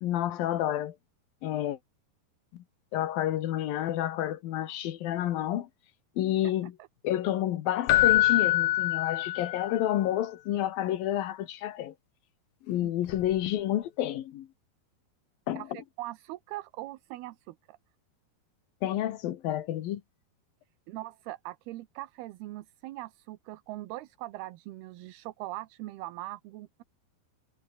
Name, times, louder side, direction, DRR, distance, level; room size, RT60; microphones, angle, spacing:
voice 1, 0.0-1.0 1.4-1.8 2.5-2.6 2.9-5.7 6.2-6.7 7.0-11.9 12.6-14.5 15.5-15.6 18.8-20.0, left 12 dB, 70° left, 2.9 m, -30 dB
Keyboard (musical), 7.9-9.8 13.1-13.3, left 15 dB, 85° left, 1.7 m, -24 dB
voice 2, 15.6-17.8 20.9-26.8, right 17 dB, 80° right, 2.9 m, -41 dB
omnidirectional pair, 4.7 m